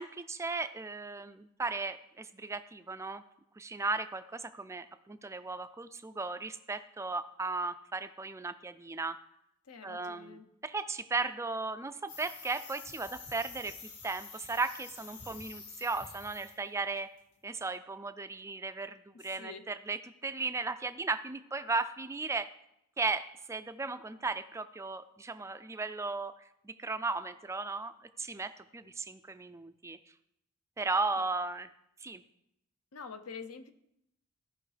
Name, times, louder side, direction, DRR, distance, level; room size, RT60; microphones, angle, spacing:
voice 1, 0.0-3.2 3.6-9.2 9.8-17.1 17.4-22.5 23.0-26.3 26.6-27.9 28.2-30.0 30.8-31.7 32.0-32.2, right 3 dB, 15° right, 11 dB, 0.3 m, -36 dB
voice 2, 9.6-10.5 19.1-19.7 31.2-31.3 32.9-33.7, left 5 dB, 70° left, 9 dB, 0.8 m, -46 dB
sound 1, 12.1-16.6 16.9-17.2, left 4 dB, 90° left, 1.8 m, -48 dB
16.0 x 5.5 x 3.3 m, 0.79 s
head